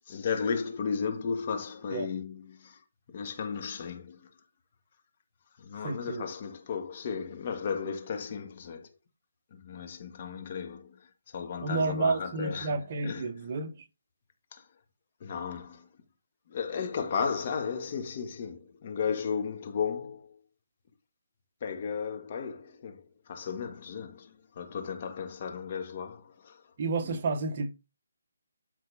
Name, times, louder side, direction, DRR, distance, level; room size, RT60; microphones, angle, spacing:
voice 1, 0.0-2.8 3.1-4.3 5.6-8.9 9.5-13.5 14.5-14.7 15.2-15.9 16.5-20.4 21.6-26.7 27.0-27.2, left 6 dB, 40° left, 1.9 m, -35 dB
voice 2, 5.8-6.2 11.6-13.8 26.8-27.7, right 3 dB, 40° right, 1.2 m, -30 dB
12.5 x 4.6 x 3.5 m
hypercardioid pair, 160°, 0 cm